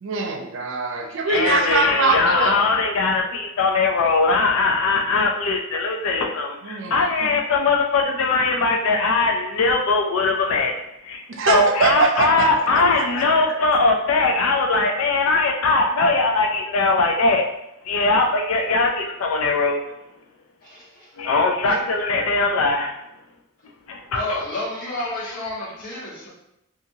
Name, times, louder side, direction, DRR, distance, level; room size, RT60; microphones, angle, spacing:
voice 1, 0.0-2.5 6.6-7.0 11.4-12.5 12.8-13.1 13.5-13.6 21.6-21.8, right 3 dB, 65° right, 1 dB, 0.4 m, -22 dB
voice 2, 1.3-17.5 17.8-19.8 21.2-22.9 23.9-24.4 25.0-25.7, left 3 dB, 85° left, 2 dB, 0.4 m, -21 dB
voice 3, 24.1-26.3, left 1 dB, 45° left, -9 dB, 1.4 m, -30 dB
2.6 x 2.4 x 2.7 m, 0.82 s
head